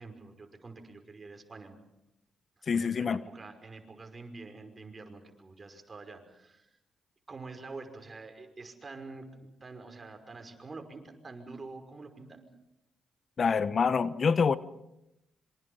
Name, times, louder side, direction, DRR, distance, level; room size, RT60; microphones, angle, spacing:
voice 1, 0.0-1.8 2.7-6.7 7.3-9.3 9.6-12.4, right 3 dB, 35° right, 5 dB, 5.7 m, -46 dB
voice 2, 2.7-3.2 13.4-14.6, left 5 dB, 50° left, 15 dB, 1.0 m, -26 dB
26.5 x 25.5 x 5.7 m, 0.87 s
supercardioid pair, 50°, 0 cm